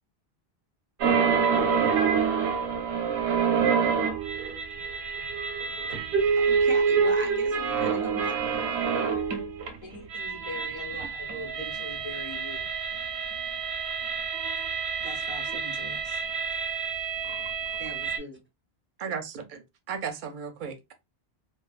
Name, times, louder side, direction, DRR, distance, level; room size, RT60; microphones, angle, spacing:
sound 1, 1.0-9.7 10.0-18.2, right 6 dB, 90° right, 0.9 m, -27 dB
voice 1, 6.4-8.3 17.8-18.4, equal, 15° right, 0.5 m, -39 dB
voice 2, 9.8-12.6 15.0-16.2, left 1 dB, 30° left, 0.8 m, -41 dB
voice 3, 19.0-20.9, right 6 dB, 60° right, 0.6 m, -35 dB
2.3 x 2.3 x 2.3 m
omnidirectional pair, 1.1 m